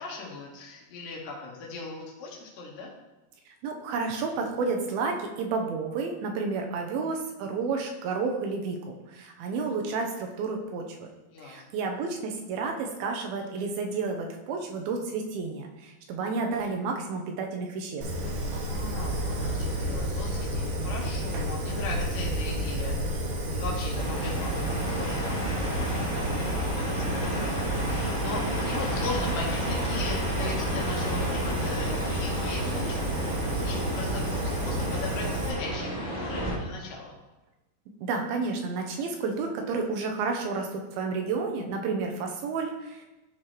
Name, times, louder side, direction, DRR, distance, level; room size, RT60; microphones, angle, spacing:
voice 1, 0.0-2.9 11.3-11.6 18.6-33.2 33.6-37.1, left 3 dB, 70° left, -3 dB, 2.9 m, -39 dB
voice 2, 3.6-11.1 11.4-18.1 38.0-43.1, right 4 dB, 85° right, 3 dB, 2.8 m, -31 dB
Fire, 18.0-35.5, right 1 dB, 65° right, 2.6 m, -31 dB
sound 1, 23.9-36.6, right 1 dB, 30° left, 1.4 m, -32 dB
12.5 x 4.8 x 3.0 m, 1.1 s
omnidirectional pair, 4.2 m